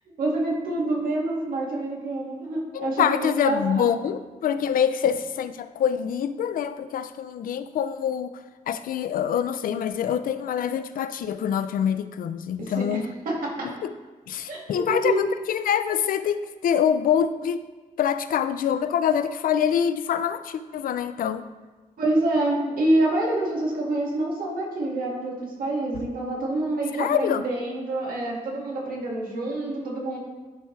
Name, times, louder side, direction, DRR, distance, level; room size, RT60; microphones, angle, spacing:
voice 1, 0.2-4.0 12.6-13.7 14.5-15.3 22.0-30.2, right 2 dB, 85° right, -3 dB, 1.9 m, -27 dB
voice 2, 2.7-8.4 8.7-13.1 13.8-13.9 14.3-17.6 18.0-21.4 27.0-27.4, left 8 dB, 80° left, 12 dB, 0.4 m, -25 dB
11.0 x 4.7 x 3.2 m, 1.3 s
wide cardioid pair, 145°, 14 cm